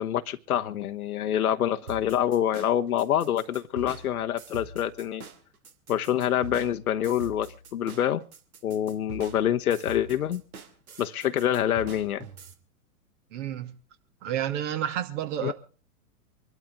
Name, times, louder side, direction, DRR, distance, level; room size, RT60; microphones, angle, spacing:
voice 1, 0.0-5.2 5.9-8.2 8.6-10.4 11.0-12.3 15.4-15.5, left 10 dB, 70° left, 1.0 m, -26 dB
sound 1, 1.9-12.5, right 3 dB, 70° right, 2.6 m, -44 dB
voice 2, 13.3-13.7 14.2-15.5, right 10 dB, 50° right, 2.4 m, -30 dB
25.5 x 12.5 x 3.5 m
hypercardioid pair, 110°, 45 cm